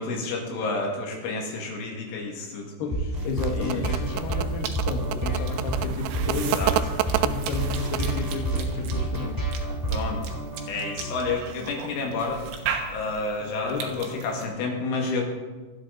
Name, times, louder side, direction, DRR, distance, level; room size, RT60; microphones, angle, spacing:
voice 1, 0.0-2.7 3.5-3.9 6.3-6.7 9.9-10.4 10.6-12.4 12.9-15.2, left 3 dB, 85° left, 0 dB, 4.7 m, -30 dB
voice 2, 2.8-6.7 7.2-9.5 11.6-11.7 12.0-12.2 13.4-14.3, left 5 dB, 65° left, 3 dB, 3.1 m, -32 dB
sound 1, 2.9-11.3, right 2 dB, 10° right, 1.3 m, -29 dB
sound 2, 3.2-8.4, right 12 dB, 90° right, 2.4 m, -29 dB
Cough / Chewing mastication, 4.0-14.5, right 6 dB, 75° right, 3.4 m, -39 dB
26.0 x 9.4 x 4.1 m, 1.3 s
omnidirectional pair, 5.5 m